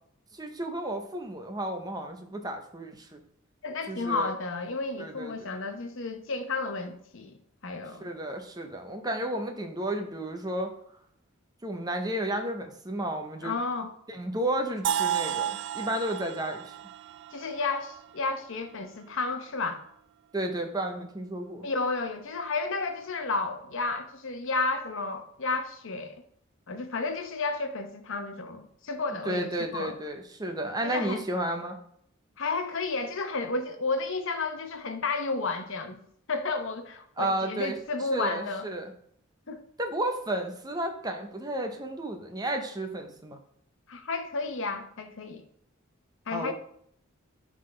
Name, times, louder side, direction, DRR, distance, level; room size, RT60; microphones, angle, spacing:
voice 1, 0.3-3.2 3.9-4.3 5.0-5.6 7.9-10.7 11.6-13.5 14.1-16.7 20.3-21.7 29.2-31.8 37.2-37.8 38.1-38.9 39.8-43.4 46.3-46.5, right 1 dB, 20° right, 0.8 m, -32 dB
voice 2, 3.6-7.4 7.6-8.1 13.4-13.9 17.3-19.8 21.6-26.2 26.7-30.0 30.8-31.2 32.4-36.0 36.3-38.7 39.5-39.6 43.9-45.4 46.3-46.5, left 3 dB, 65° left, 0.9 m, -32 dB
sound 1, 14.8-18.8, right 10 dB, 60° right, 0.3 m, -33 dB
11.0 x 3.7 x 3.3 m
head